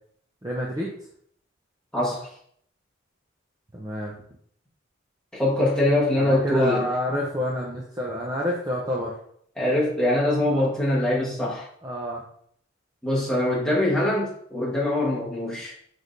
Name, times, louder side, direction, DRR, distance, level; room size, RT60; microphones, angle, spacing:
voice 1, 0.4-0.9 3.7-4.1 6.2-9.1 10.5-10.6 11.8-12.2, equal, 15° right, -3 dB, 0.5 m, -28 dB
voice 2, 1.9-2.3 5.3-6.9 9.6-11.7 13.0-15.7, left 1 dB, 5° left, -7 dB, 1.2 m, -23 dB
6.1 x 3.1 x 2.6 m, 0.65 s
head